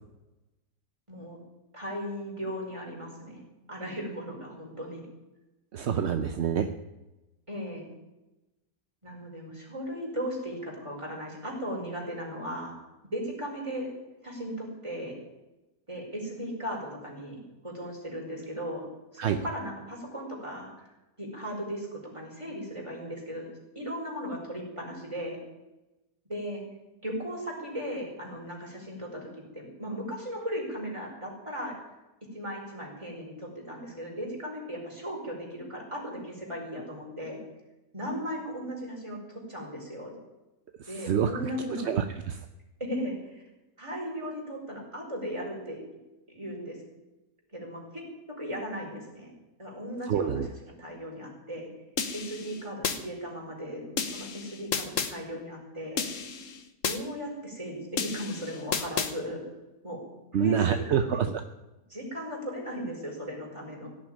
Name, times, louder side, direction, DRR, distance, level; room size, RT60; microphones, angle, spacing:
voice 1, 1.7-3.4 3.7-5.0 7.5-7.9 9.0-12.7 13.1-13.9 14.2-15.2 15.9-18.9 19.1-20.9 21.2-23.5 23.7-25.4 26.3-26.6 27.0-29.3 29.5-31.8 32.3-37.4 37.9-40.1 40.9-41.9 42.8-43.4 43.8-45.8 46.3-46.8 47.5-48.0 48.4-49.3 49.6-50.4 50.8-51.7 52.1-56.0 56.9-59.4 59.8-60.0 60.3-61.2 61.9-63.9, equal, 15° right, -2 dB, 5.1 m, -37 dB
voice 2, 5.7-6.7 19.2-19.4 41.0-41.3 41.8-42.4 50.1-50.5 60.3-61.3, right 8 dB, 55° right, 8 dB, 0.8 m, -26 dB
sound 1, 52.0-53.0 54.0-55.1 56.0-57.0 58.0-59.1, left 6 dB, 55° left, 1.4 m, -32 dB
17.0 x 7.3 x 9.9 m, 1.0 s
omnidirectional pair, 1.7 m